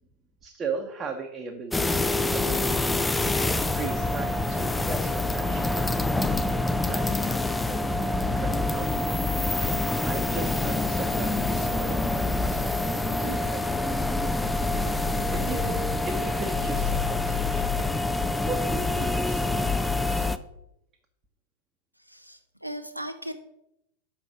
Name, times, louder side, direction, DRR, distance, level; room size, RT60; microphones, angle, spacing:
voice 1, 0.4-2.0 2.3-9.1 9.6-14.1 15.3-17.7 18.4-20.3, right 4 dB, 20° right, 3 dB, 0.9 m, -39 dB
sound 1, 1.7-20.4, left 2 dB, 5° left, 0.4 m, -26 dB
sound 2, 10.3-10.7 11.4-12.3 12.9-13.6 14.3-15.2 15.9-16.7 17.4-18.2, right 4 dB, 45° right, 1.0 m, -48 dB
voice 2, 22.0-23.3, equal, 90° right, 8 dB, 0.6 m, -37 dB
6.2 x 5.9 x 6.3 m, 0.82 s
figure-of-eight pair, 90°, 0 cm